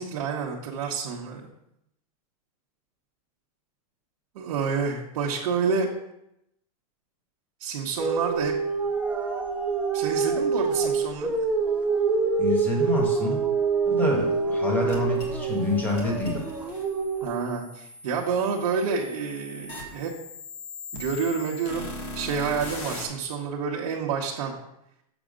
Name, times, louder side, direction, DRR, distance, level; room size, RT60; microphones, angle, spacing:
voice 1, 0.0-1.5 4.3-5.9 7.6-8.5 9.9-11.4 17.2-20.1 20.9-21.9 22.1-24.5, right 5 dB, 60° right, -3 dB, 1.2 m, -28 dB
sound 1, 8.0-17.3, right 5 dB, 5° right, 0.5 m, -26 dB
voice 2, 12.4-13.4 13.9-16.5, left 2 dB, 10° left, -1 dB, 1.5 m, -27 dB
sound 2, 14.9-23.1, left 2 dB, 35° left, 1.6 m, -40 dB
7.2 x 4.9 x 5.1 m, 0.81 s
supercardioid pair, 170°, 19 cm